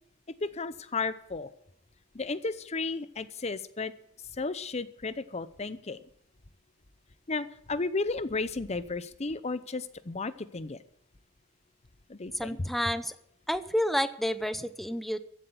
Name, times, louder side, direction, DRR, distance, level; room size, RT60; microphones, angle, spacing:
voice 1, 0.4-1.5 2.1-3.9 4.4-6.0 7.3-10.8 12.1-12.7, left 3 dB, 35° left, 14 dB, 0.8 m, -33 dB
voice 2, 12.3-13.1 13.5-15.2, equal, ahead, 12 dB, 0.7 m, -30 dB
15.0 x 7.9 x 7.8 m, 0.73 s
head